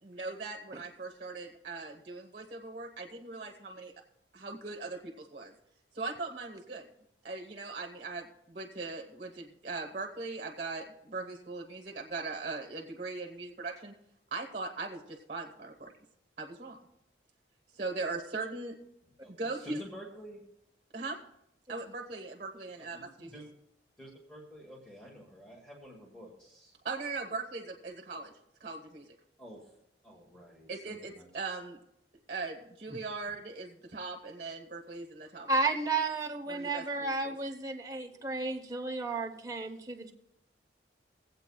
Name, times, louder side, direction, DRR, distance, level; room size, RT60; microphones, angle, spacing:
voice 1, 0.0-3.9 4.3-5.5 5.9-6.9 7.2-13.9 14.3-15.9 16.4-16.8 17.7-18.8 19.3-19.8 20.9-21.2 21.7-23.3 26.8-28.3 28.6-29.1 30.7-31.8 32.3-35.7 36.5-37.4, right 3 dB, 40° right, 2 dB, 1.2 m, -40 dB
voice 2, 19.2-20.4 22.8-23.4 24.0-26.7 29.4-29.6 30.0-31.3, equal, 5° left, -2 dB, 1.4 m, -50 dB
voice 3, 35.5-40.1, right 3 dB, 20° right, 2 dB, 0.9 m, -33 dB
23.0 x 8.1 x 2.3 m, 0.78 s
head